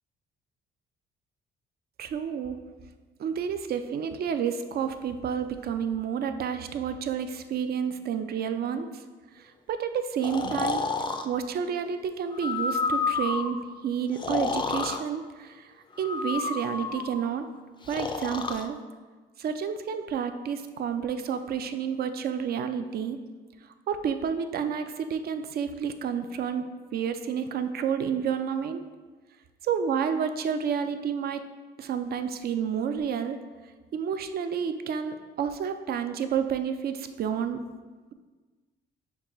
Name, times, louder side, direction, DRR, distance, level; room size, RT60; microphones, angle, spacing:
voice 1, 2.0-2.6 3.2-8.9 9.7-10.8 11.2-15.7 16.0-17.5 17.9-18.8 19.4-23.2 23.9-26.7 26.9-28.8 29.6-31.4 31.8-33.4 33.9-37.6, right 7 dB, 50° right, 9 dB, 0.4 m, -30 dB
Breathing, 10.2-11.3 12.3-13.6 14.1-15.0 16.0-17.2 17.9-18.7, left 4 dB, 25° left, 0.3 m, -30 dB
5.9 x 2.3 x 3.7 m, 1.3 s
cardioid pair, 90°, 20 cm